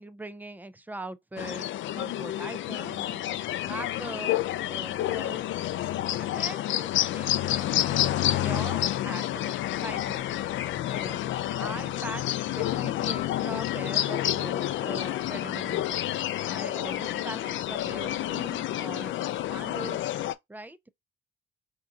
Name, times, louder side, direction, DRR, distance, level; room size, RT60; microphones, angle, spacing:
voice 1, 0.0-1.7 1.9-3.2 3.6-4.3 4.6-5.5 6.2-10.3 10.9-11.2 11.6-16.0 16.4-19.1 19.5-20.0 20.5-20.8, right 2 dB, 10° right, 0.4 m, -41 dB
sound 1, 1.4-20.3, left 13 dB, 75° left, 0.4 m, -29 dB
4.5 x 2.7 x 2.5 m
cardioid pair, 90°, 20 cm